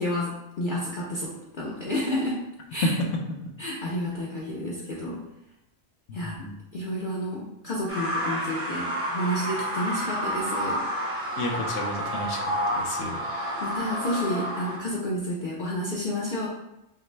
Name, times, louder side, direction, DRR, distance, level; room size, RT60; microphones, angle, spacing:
voice 1, 0.0-2.4 2.7-2.9 3.6-5.2 6.1-6.5 6.7-10.8 13.6-16.5, left 1 dB, 50° left, -5 dB, 0.7 m, -30 dB
voice 2, 6.1-6.6 11.4-12.4 12.7-13.2 14.1-14.2, left 2 dB, 75° left, 1 dB, 1.0 m, -31 dB
sound 1, 7.9-14.8, equal, 15° right, 0.7 m, -30 dB
5.7 x 2.1 x 3.2 m, 0.88 s
omnidirectional pair, 1.3 m